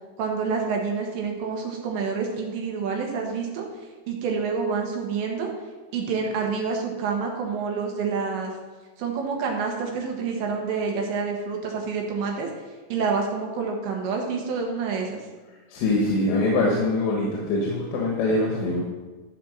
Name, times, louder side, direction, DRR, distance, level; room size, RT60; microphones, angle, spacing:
voice 1, 0.2-3.7 4.1-5.5 5.9-8.5 9.0-12.5 12.9-15.2, right 5 dB, 80° right, 1 dB, 3.6 m, -28 dB
voice 2, 15.7-18.8, left 2 dB, 75° left, -2 dB, 3.5 m, -23 dB
13.5 x 4.5 x 6.3 m, 1.3 s
omnidirectional pair, 5.2 m